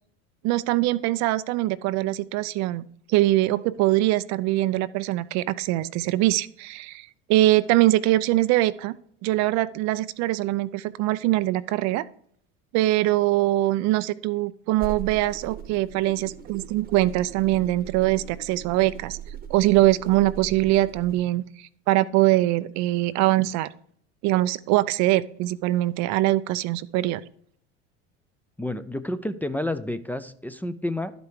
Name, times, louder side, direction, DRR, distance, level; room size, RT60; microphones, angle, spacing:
voice 1, 0.4-2.8 3.1-8.9 9.2-12.1 12.7-19.2 19.5-23.7 24.2-27.2, right 16 dB, 55° right, 16 dB, 0.5 m, -23 dB
sound 1, 14.7-21.2, right 9 dB, 25° right, 1.0 m, -40 dB
voice 2, 28.6-31.1, left 1 dB, 5° left, 8 dB, 0.4 m, -30 dB
11.5 x 5.2 x 4.7 m, 0.64 s
hypercardioid pair, 85°, 33 cm